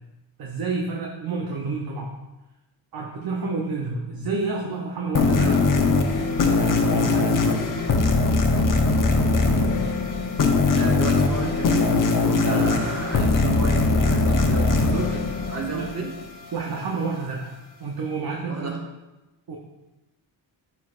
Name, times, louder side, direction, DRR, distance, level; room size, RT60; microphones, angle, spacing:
voice 1, 0.4-2.1 2.9-5.7 6.4-7.5 12.5-12.7 15.7-16.0 16.5-18.8 19.5-19.6, right 4 dB, 45° right, 0 dB, 0.9 m, -29 dB
sound 1, 5.1-16.3, left 3 dB, 40° left, 0.9 m, -21 dB
voice 2, 10.7-11.9 12.2-16.1 18.5-18.8, right 3 dB, 30° right, -2 dB, 1.7 m, -32 dB
9.2 x 4.3 x 2.6 m, 1.0 s
cardioid pair, 65°, 49 cm